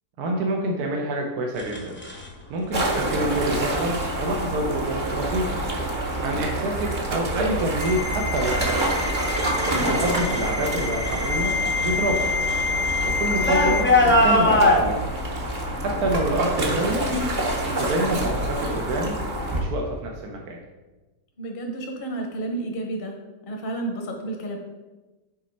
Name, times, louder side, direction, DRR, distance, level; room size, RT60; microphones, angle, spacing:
voice 1, 0.2-2.0 2.5-5.6 6.2-9.0 10.0-11.5 11.8-12.3 13.0-15.1 15.8-17.1 17.6-19.2 19.5-20.6, right 1 dB, 70° right, 1 dB, 1.2 m, -27 dB
sound 1, 1.6-2.3 3.4-3.7 4.3-4.8 5.3-5.8 6.2-10.5 10.7-14.8, left 1 dB, 10° left, 0.5 m, -24 dB
sound 2, 2.7-19.6, right 1 dB, 35° right, 1.0 m, -27 dB
Ringtone, 7.8-13.8, left 4 dB, 85° right, 3.0 m, -28 dB
voice 2, 9.5-9.9 21.4-23.2 23.4-24.6, right 2 dB, 40° left, 2 dB, 0.9 m, -31 dB
6.2 x 4.2 x 5.4 m, 1.2 s
omnidirectional pair, 1.8 m